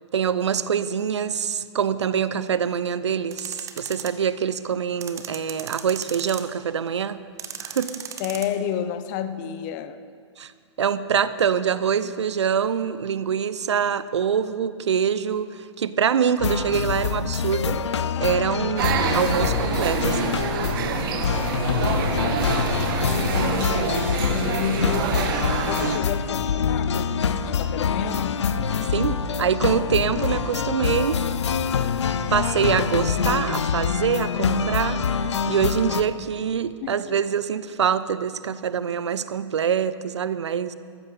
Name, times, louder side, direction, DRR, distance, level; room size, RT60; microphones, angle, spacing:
voice 1, 0.1-7.2 7.6-8.0 10.4-10.5 10.8-17.8 18.2-20.4 28.9-31.2 32.3-35.0 35.5-40.7, right 7 dB, 65° right, 14 dB, 0.6 m, -25 dB
sound 1, 3.3-4.1 5.0-6.6 7.4-8.5, right 8 dB, 20° right, 0.9 m, -36 dB
voice 2, 8.2-10.0 23.2-25.1 25.6-28.4 36.8-37.0, left 9 dB, 35° left, 11 dB, 0.8 m, -31 dB
sound 2, 16.4-36.0, left 6 dB, 65° left, 0.7 m, -25 dB
sound 3, 18.8-26.0, right 7 dB, 45° right, 1.1 m, -27 dB
14.5 x 13.5 x 5.2 m, 2.1 s
figure-of-eight pair, 105°, 16 cm